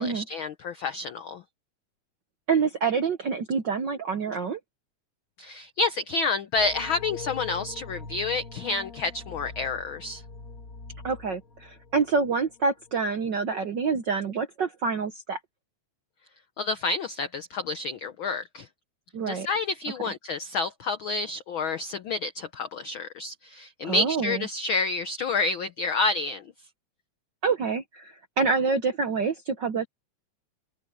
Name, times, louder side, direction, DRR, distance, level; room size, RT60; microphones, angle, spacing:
voice 1, 0.0-1.4 5.4-10.2 16.6-18.7 19.3-26.4, left 3 dB, 80° left, 1.1 m, -29 dB
voice 2, 2.5-4.6 11.0-15.4 19.1-19.5 23.8-24.4 27.4-29.9, right 5 dB, 65° right, 1.1 m, -27 dB
sound 1, 6.5-12.5 12.8-13.0, left 4 dB, 35° left, 1.8 m, -43 dB
open air
omnidirectional pair, 3.4 m